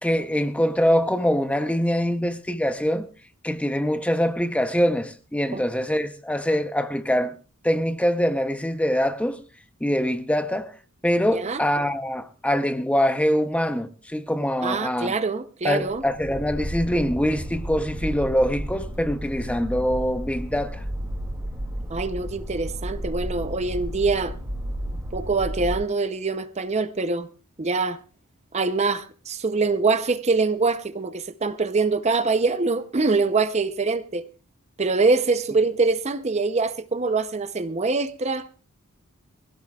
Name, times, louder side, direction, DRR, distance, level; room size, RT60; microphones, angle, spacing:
voice 1, 0.0-3.1 3.4-7.4 7.6-9.4 9.8-10.7 11.0-15.1 15.6-20.8, equal, 5° left, 0.7 m, -24 dB
voice 2, 11.3-11.6 14.6-16.0 21.9-24.4 25.1-27.3 27.6-28.0 28.5-34.2 34.8-38.5, right 3 dB, 30° right, 0.6 m, -24 dB
sound 1, 15.9-25.7, equal, 15° right, 2.4 m, -32 dB
23.0 x 16.5 x 2.3 m
head